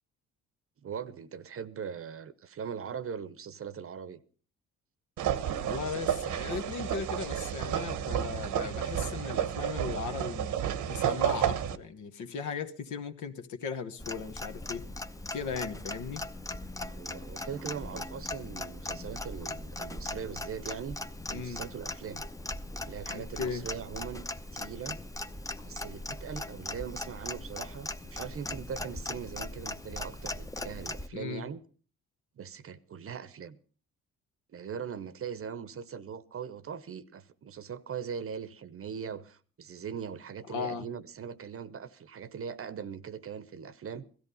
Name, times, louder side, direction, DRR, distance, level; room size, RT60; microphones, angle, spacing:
voice 1, 0.8-4.2 16.8-21.0 21.3-22.3 22.8-24.3 24.5-25.0 25.6-31.6 32.4-33.6 34.5-44.1, right 7 dB, 50° right, 0.9 m, -40 dB
sound 1, 5.2-11.8, right 9 dB, 75° right, 1.1 m, -31 dB
voice 2, 5.6-10.6 10.9-14.8 15.3-16.2 21.3-21.6 23.1-23.6 26.5-26.7 31.1-31.5 40.5-40.9, left 5 dB, 75° left, 1.4 m, -37 dB
Clock, 14.0-31.1, left 2 dB, 10° left, 0.7 m, -39 dB
16.5 x 13.5 x 5.5 m
cardioid pair, 90°, 30 cm